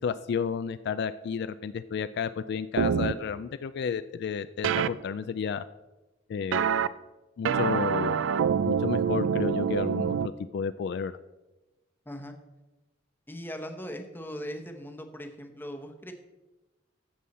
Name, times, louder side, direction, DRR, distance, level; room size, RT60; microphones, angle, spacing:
voice 1, 0.0-5.6 6.3-6.7 7.4-8.2 8.6-11.1, left 6 dB, 60° left, 13 dB, 0.3 m, -32 dB
sound 1, 2.8-3.1 4.6-4.9 6.5-6.9 7.4-10.3, right 7 dB, 80° right, 0.4 m, -26 dB
voice 2, 13.3-16.1, equal, 10° left, 5 dB, 0.9 m, -39 dB
15.0 x 5.5 x 4.1 m, 1.1 s
head